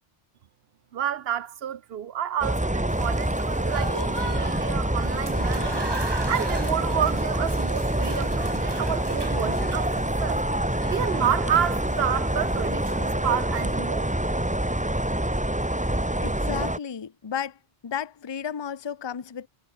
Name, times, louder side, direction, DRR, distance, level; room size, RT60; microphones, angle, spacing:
voice 1, 0.9-5.8 6.3-10.4 10.9-14.1, right 9 dB, 70° right, 0.9 m, -29 dB
sound 1, 2.4-16.8, right 1 dB, 5° right, 1.0 m, -26 dB
Applause / Crowd, 2.9-13.8, right 2 dB, 25° right, 1.6 m, -38 dB
voice 2, 16.2-19.5, left 8 dB, 30° left, 0.6 m, -33 dB
omnidirectional pair, 1.1 m